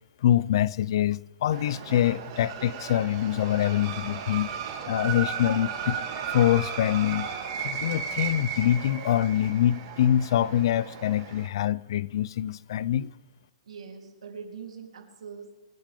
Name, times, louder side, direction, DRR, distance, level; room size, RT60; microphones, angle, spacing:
voice 1, 0.2-4.5 4.9-6.0 6.3-7.3 7.6-13.1, left 11 dB, 50° left, 0.4 m, -25 dB
sound 1, 1.5-11.5, right 6 dB, 35° right, 2.7 m, -35 dB
voice 2, 13.6-15.6, right 6 dB, 85° right, 3.5 m, -42 dB
28.0 x 10.0 x 3.7 m
hypercardioid pair, 170°, 3 cm